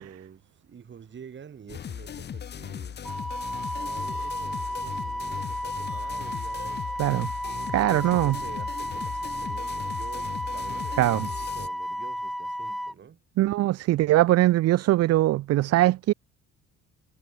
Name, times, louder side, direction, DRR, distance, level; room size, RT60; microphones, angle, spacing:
voice 1, 0.0-3.0 3.8-13.2, right 7 dB, 35° right, 5.3 m, -48 dB
sound 1, 1.7-11.7, left 8 dB, 35° left, 0.9 m, -38 dB
Wind instrument woodwind instrument, 3.0-12.9, equal, ahead, 0.6 m, -33 dB
voice 2, 7.7-8.3 11.0-11.3 13.4-16.1, right 15 dB, 55° right, 0.5 m, -21 dB
cardioid pair, 145°, 31 cm